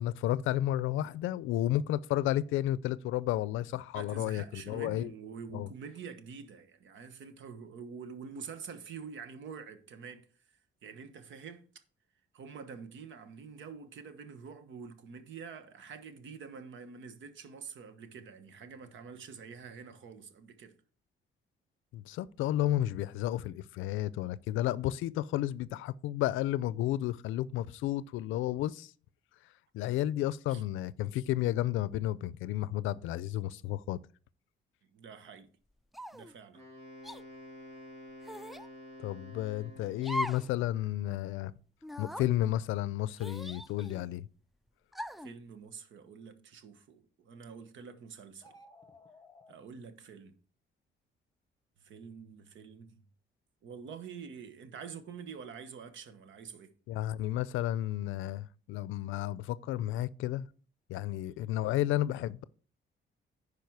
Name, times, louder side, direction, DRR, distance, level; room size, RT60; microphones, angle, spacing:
voice 1, 0.0-5.1 5.5-5.7 21.9-28.9 29.7-34.0 39.0-41.5 42.0-44.3 56.9-60.5 60.9-62.4, left 13 dB, 90° left, 0.5 m, -32 dB
voice 2, 3.9-10.5 10.8-11.7 12.3-20.7 30.5-30.6 34.9-35.5 36.1-36.6 45.2-48.5 49.5-50.3 51.8-53.0 53.6-56.7, right 6 dB, 70° right, 1.2 m, -47 dB
sound 1, 35.9-36.3 37.0-37.2 38.2-38.7 40.0-40.5 40.9-41.0 41.8-42.3 43.2-44.1 44.9-45.3, left 1 dB, ahead, 0.4 m, -39 dB
Wind instrument woodwind instrument, 36.5-40.3, equal, 35° right, 4.2 m, -50 dB
sound 2, 48.3-49.5, left 1 dB, 20° left, 0.9 m, -56 dB
10.5 x 4.9 x 4.7 m
cardioid pair, 90°, 20 cm